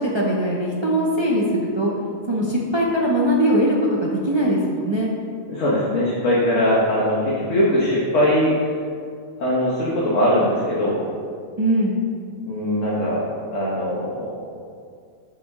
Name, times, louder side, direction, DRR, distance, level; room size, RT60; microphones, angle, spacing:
voice 1, 0.0-1.9 2.3-5.1 11.6-11.9, right 1 dB, 35° right, -4 dB, 0.4 m, -21 dB
voice 2, 5.5-8.5 9.4-11.0 12.4-13.2 13.5-14.5, equal, 70° left, -8 dB, 1.4 m, -21 dB
6.2 x 5.3 x 3.5 m, 2.3 s
omnidirectional pair, 1.4 m